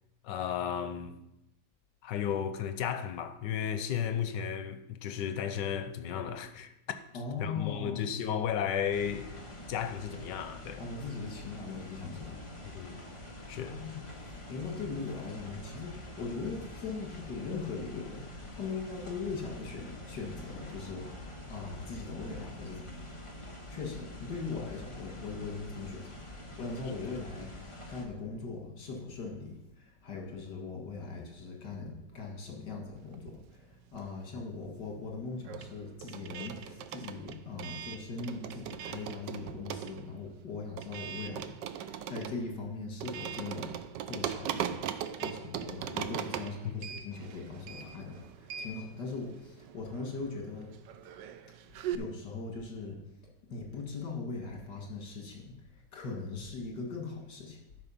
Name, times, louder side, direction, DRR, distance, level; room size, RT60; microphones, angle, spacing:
voice 1, 0.2-1.1 2.0-6.7 7.4-9.4 9.7-10.8 12.6-13.0 13.5-13.8 27.0-27.1 46.6-47.0, left 8 dB, 90° left, 1.4 m, -34 dB
voice 2, 7.1-8.0 10.8-12.5 13.6-23.0 23.7-26.2 26.6-43.7 44.1-44.8 45.2-50.8 51.9-53.0 53.5-57.6, left 4 dB, 75° left, 2.3 m, -40 dB
sound 1, 8.9-28.1, left 1 dB, 20° left, 1.2 m, -46 dB
sound 2, 33.1-34.4 34.6-52.0, right 9 dB, 85° right, 1.3 m, -40 dB
12.0 x 5.4 x 5.6 m
omnidirectional pair, 1.9 m